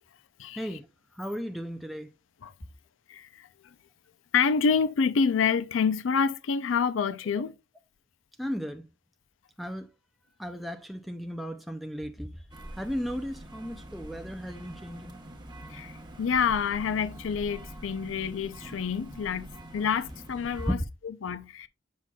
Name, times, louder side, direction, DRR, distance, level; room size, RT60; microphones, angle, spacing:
voice 1, 0.6-0.9 1.1-2.1 8.4-8.9 9.6-9.9 10.4-12.5 12.8-15.2 20.6-20.8, equal, ahead, 0.4 m, -35 dB
voice 2, 3.1-3.5 4.3-7.5 15.7-21.7, left 6 dB, 85° left, 0.4 m, -28 dB
sound 1, 12.5-20.8, right 1 dB, 25° right, 1.0 m, -45 dB
7.4 x 5.9 x 2.3 m
head